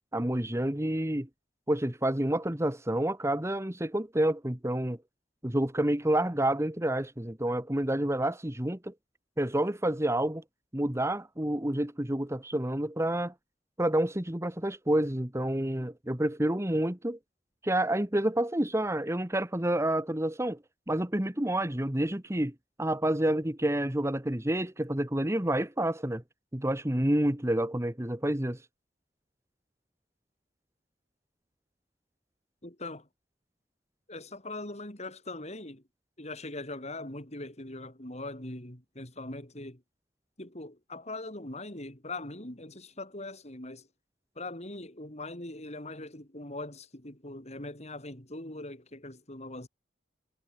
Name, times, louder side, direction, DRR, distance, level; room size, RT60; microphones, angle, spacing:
voice 1, 0.1-1.3 1.7-5.0 5.4-8.9 9.4-10.4 10.7-13.3 13.8-17.2 17.6-20.6 20.9-26.2 26.5-28.6, right 1 dB, 15° right, 1.6 m, -29 dB
voice 2, 32.6-33.1 34.1-35.8 36.2-39.8 40.4-43.9 44.4-49.7, left 2 dB, 40° left, 5.3 m, -41 dB
head